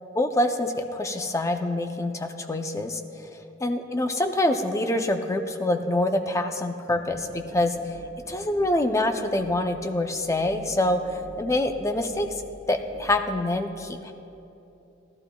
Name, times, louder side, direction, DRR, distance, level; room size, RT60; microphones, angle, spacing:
voice 1, 0.2-3.0 3.6-7.7 8.3-11.0 11.4-12.3 12.7-14.1, left 1 dB, 15° left, 5 dB, 0.5 m, -25 dB
sound 1, 6.9-13.5, left 1 dB, 15° right, 2.0 m, -48 dB
17.0 x 14.0 x 2.3 m, 2.9 s
head